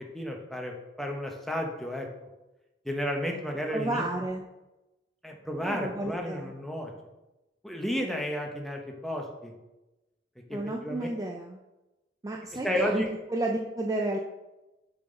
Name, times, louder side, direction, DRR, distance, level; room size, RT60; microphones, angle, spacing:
voice 1, 0.1-2.1 2.8-4.0 5.2-6.9 7.6-9.5 10.5-11.1 12.5-13.1, equal, ahead, 1 dB, 0.7 m, -32 dB
voice 2, 3.7-4.5 5.6-6.5 10.5-11.6 12.2-13.0 13.3-14.2, right 2 dB, 20° right, 1 dB, 0.4 m, -31 dB
6.7 x 3.9 x 3.9 m, 1.0 s
head